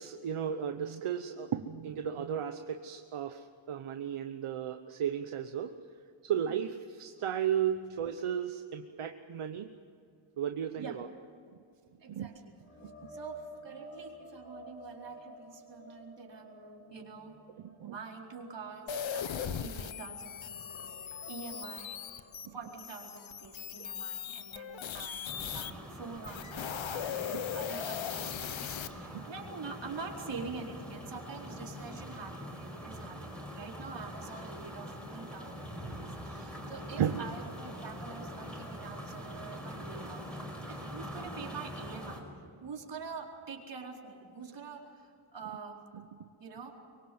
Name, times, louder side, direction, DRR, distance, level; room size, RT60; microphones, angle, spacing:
voice 1, 0.0-5.8 6.2-9.7 10.4-11.1 12.1-12.3 17.6-17.9 22.4-22.5 27.3-27.4 29.1-29.3 37.0-37.2, right 9 dB, 80° right, 6 dB, 1.2 m, -34 dB
voice 2, 12.0-12.5 13.1-17.4 17.8-42.3 42.6-45.8 46.4-46.8, right 4 dB, 60° right, 0 dB, 4.6 m, -46 dB
sound 1, 12.6-20.0 20.3-24.2 24.6-24.8 28.2-28.3, right 1 dB, 30° left, 3.4 m, -52 dB
sound 2, 18.9-25.7 26.2-28.9, left 8 dB, 65° left, 1.2 m, -39 dB
sound 3, 25.2-42.2, equal, ahead, 5.5 m, -44 dB
24.5 x 23.5 x 7.8 m, 2.4 s
wide cardioid pair, 125°, 49 cm